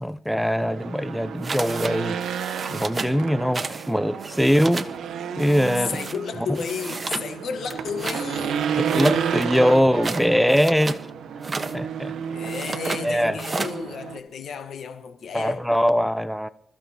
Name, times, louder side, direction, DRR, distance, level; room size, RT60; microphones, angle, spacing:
voice 1, 0.0-2.2 2.7-4.9 5.4-6.0 8.8-11.0 11.7-12.1 13.0-13.4 15.3-16.5, equal, ahead, 0.5 m, -22 dB
Race car auto racing / Engine, 0.5-14.2, right 7 dB, 85° right, 0.9 m, -31 dB
sound 1, 1.4-1.9 2.2-3.2 3.5-3.9 4.1-4.9 5.4-6.2 6.5-7.3 7.7-8.2 8.8-11.0 11.4-11.8 12.4-13.0 13.4-13.8, right 3 dB, 35° right, 1.1 m, -32 dB
voice 2, 5.9-8.6 12.3-15.7, left 6 dB, 70° left, 1.3 m, -33 dB
27.0 x 14.5 x 2.9 m
cardioid pair, 75°, 0 cm